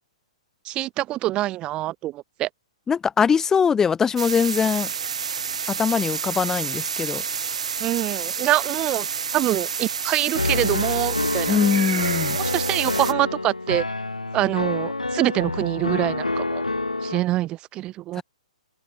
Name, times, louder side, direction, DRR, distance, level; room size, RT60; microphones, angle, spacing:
voice 1, 0.6-2.5 7.8-9.1 9.3-11.6 12.3-13.8 14.3-16.6 17.0-18.2, right 15 dB, 25° right, 2.4 m, -25 dB
voice 2, 2.9-4.9 5.7-7.2 11.5-12.4 18.2-18.3, left 6 dB, 15° left, 3.9 m, -22 dB
sound 1, 4.2-13.1, right 7 dB, 65° right, 5.0 m, -29 dB
Piano, 10.3-17.2, left 2 dB, 90° left, 1.9 m, -27 dB
figure-of-eight pair, 120°, 4 cm